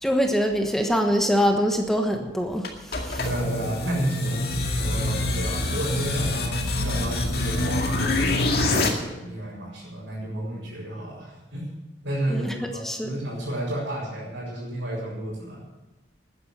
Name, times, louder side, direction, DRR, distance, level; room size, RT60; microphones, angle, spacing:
voice 1, 0.0-3.2 12.3-13.2, equal, ahead, 3 dB, 1.3 m, -24 dB
sound 1, 2.6-8.9, left 2 dB, 55° left, 2.1 m, -25 dB
voice 2, 3.2-11.7 12.0-15.6, right 1 dB, 85° right, -8 dB, 5.3 m, -32 dB
13.5 x 9.9 x 8.1 m, 1.1 s
head